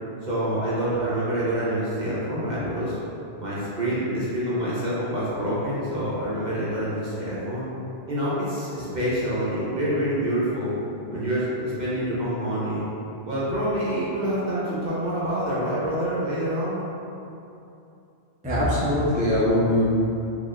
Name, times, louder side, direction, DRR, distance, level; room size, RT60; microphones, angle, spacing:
voice 1, 0.2-3.0 3.4-7.7 8.1-10.8 11.1-12.8 13.2-16.8, right 1 dB, 45° right, -9 dB, 0.8 m, -26 dB
voice 2, 18.4-19.9, left 1 dB, 10° right, -9 dB, 0.4 m, -21 dB
3.9 x 2.9 x 2.4 m, 2.8 s
omnidirectional pair, 1.2 m